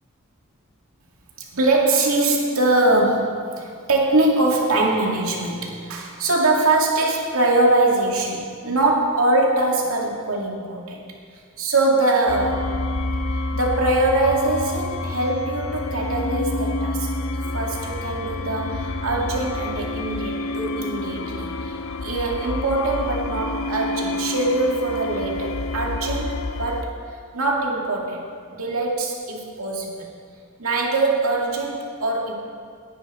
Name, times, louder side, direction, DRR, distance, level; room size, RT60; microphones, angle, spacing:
voice 1, 1.4-11.0 11.6-12.7 13.3-17.1 17.5-27.0 27.3-30.1 30.6-32.3, right 2 dB, 75° right, -1 dB, 2.4 m, -22 dB
sound 1, 12.3-26.8, left 2 dB, 70° left, 0.7 m, -28 dB
18.5 x 10.0 x 4.4 m, 2.2 s
head